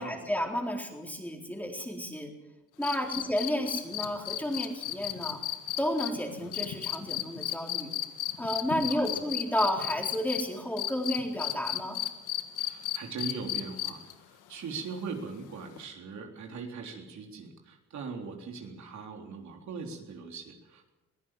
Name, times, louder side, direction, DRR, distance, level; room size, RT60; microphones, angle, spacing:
voice 1, 0.0-2.3 2.8-5.4 5.8-7.9 8.4-12.0, equal, 5° left, 2 dB, 4.1 m, -32 dB
sound 1, 2.8-10.4 10.8-14.1 15.8-15.9, left 13 dB, 85° left, 1.7 m, -33 dB
voice 2, 8.9-9.3 12.6-20.9, right 4 dB, 70° right, 2 dB, 3.7 m, -41 dB
22.5 x 15.5 x 7.6 m, 1.0 s
cardioid pair, 90°, 30 cm